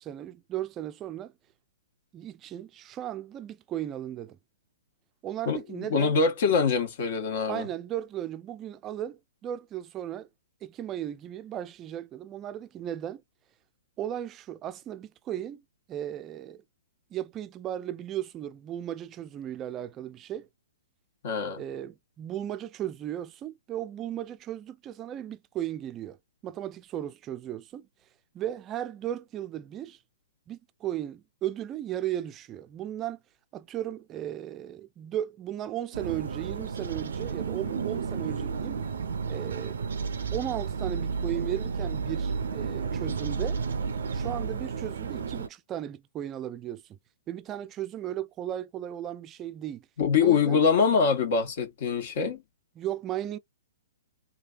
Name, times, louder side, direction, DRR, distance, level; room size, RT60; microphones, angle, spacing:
voice 1, 0.0-1.3 2.1-4.4 5.2-6.2 7.4-10.3 10.6-13.2 14.0-15.6 15.9-16.6 17.1-20.5 21.6-26.2 26.4-27.9 28.3-30.0 30.5-33.2 33.5-38.9 39.3-39.8 40.3-43.6 44.1-46.8 47.3-49.9 50.2-50.6 52.8-53.4, right 11 dB, 25° right, 0.5 m, -36 dB
voice 2, 5.5-7.7 21.2-21.6 50.0-52.4, left 5 dB, 50° left, 1.3 m, -24 dB
sound 1, 35.9-45.5, right 5 dB, 70° right, 0.6 m, -32 dB
3.3 x 2.3 x 2.4 m
figure-of-eight pair, 120°, 0 cm